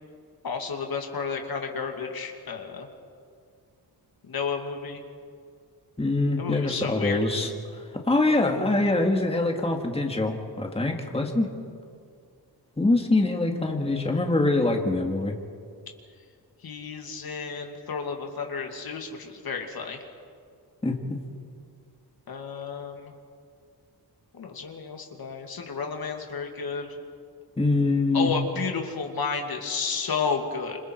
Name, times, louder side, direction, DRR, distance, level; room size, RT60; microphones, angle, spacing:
voice 1, 0.4-2.9 4.2-5.0 6.4-7.2 16.6-20.0 22.3-23.1 24.3-26.9 28.1-30.8, left 5 dB, 65° left, 3 dB, 2.5 m, -32 dB
voice 2, 6.0-7.5 8.1-11.5 12.8-15.3 20.8-21.0 27.6-28.3, left 2 dB, 15° left, 2 dB, 2.3 m, -24 dB
27.0 x 26.0 x 4.7 m, 2.2 s
wide cardioid pair, 105°, 40 cm